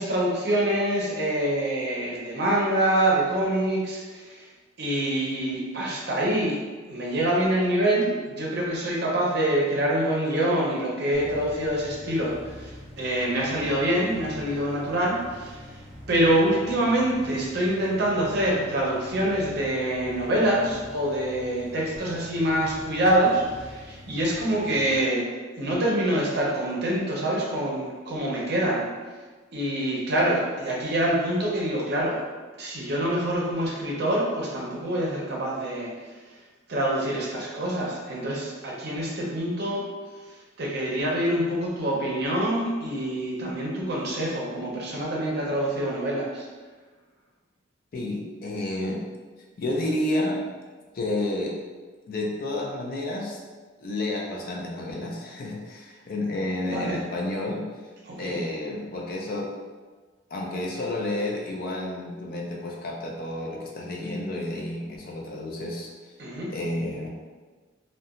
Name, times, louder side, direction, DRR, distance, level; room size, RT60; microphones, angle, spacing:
voice 1, 0.0-4.5 4.8-6.6 6.9-15.8 16.1-25.2 25.5-28.9 29.5-32.2 32.6-35.9 36.7-39.8 40.6-46.4 56.6-57.0 58.0-58.4 66.2-66.5, right 1 dB, 55° right, -3 dB, 0.6 m, -25 dB
sound 1, 11.1-25.0, left 1 dB, ahead, 0.6 m, -45 dB
voice 2, 47.9-49.0 49.6-50.4 50.9-51.6 52.1-53.4 53.8-57.7 58.2-59.5 60.3-65.9 66.5-67.1, left 1 dB, 45° left, -1 dB, 0.4 m, -30 dB
2.8 x 2.2 x 2.4 m, 1.4 s
head